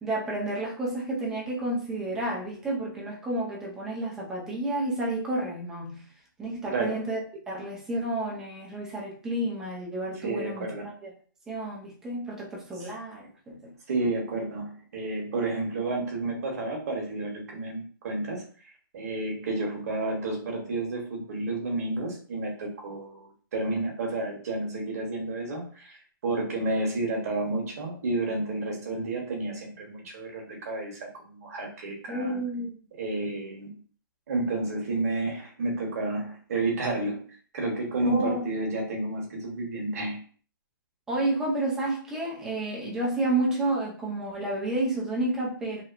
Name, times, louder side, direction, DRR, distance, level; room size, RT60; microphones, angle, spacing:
voice 1, 0.0-6.0 6.4-10.7 11.0-11.1 11.5-13.7 32.1-32.8 38.0-38.5 41.1-45.8, right 2 dB, 5° right, 0.4 m, -30 dB
voice 2, 6.7-7.0 10.2-10.9 12.8-12.9 13.9-18.4 18.9-32.4 33.0-33.8 34.3-37.3 37.5-40.2, right 2 dB, 40° right, 0.9 m, -31 dB
2.8 x 2.0 x 2.4 m
hypercardioid pair, 160°, 12 cm